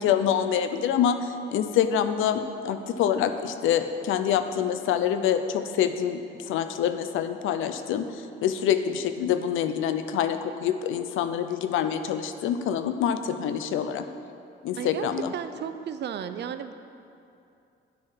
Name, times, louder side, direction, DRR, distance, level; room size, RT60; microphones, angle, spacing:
voice 1, 0.0-6.2 6.5-14.0 14.6-15.3, left 9 dB, 85° left, 9 dB, 0.6 m, -26 dB
voice 2, 14.8-15.1 15.3-16.7, right 8 dB, 60° right, 10 dB, 0.6 m, -34 dB
9.4 x 6.6 x 5.7 m, 2.6 s
cardioid pair, 90°, 20 cm